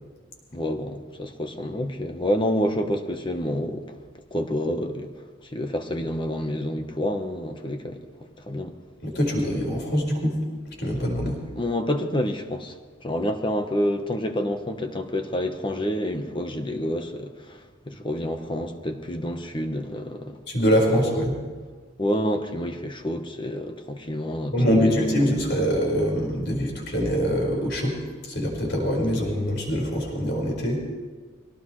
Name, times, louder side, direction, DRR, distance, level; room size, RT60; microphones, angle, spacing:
voice 1, 0.5-3.8 4.3-5.1 5.4-8.1 8.5-8.7 11.4-12.8 13.0-20.4 20.9-21.0 22.0-25.3, equal, 25° left, 6 dB, 1.2 m, -28 dB
voice 2, 9.0-10.4 10.8-11.4 20.5-21.4 24.5-27.9 28.3-30.8, equal, 60° left, -1 dB, 5.2 m, -24 dB
23.5 x 18.5 x 3.3 m, 1.5 s
head